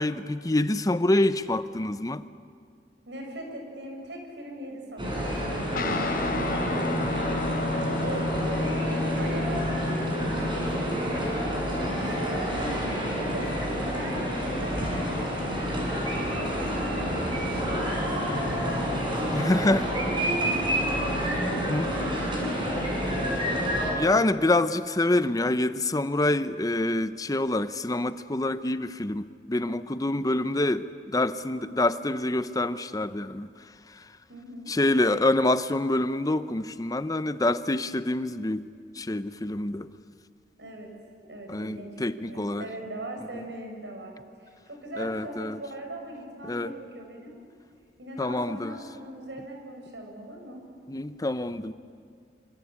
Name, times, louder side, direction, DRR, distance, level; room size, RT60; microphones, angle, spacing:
voice 1, 0.0-2.2 19.3-19.9 21.7-21.9 23.9-33.5 33.9-34.1 34.7-38.6 38.9-39.9 41.5-42.6 43.3-43.4 45.0-45.6 46.4-46.7 48.2-48.8 50.9-51.7, left 2 dB, 20° left, 12 dB, 0.7 m, -26 dB
voice 2, 3.0-7.4 7.8-8.7 9.2-12.9 13.3-15.9 16.2-22.1 34.3-34.7 40.6-40.9 41.2-47.3 48.0-50.6, right 1 dB, 80° right, 2 dB, 6.4 m, -41 dB
sound 1, 5.0-23.9, equal, 30° right, 6.9 m, -28 dB
Guitar, 5.7-14.5, left 2 dB, 50° left, 1.0 m, -33 dB
25.5 x 25.5 x 8.7 m, 2.2 s
head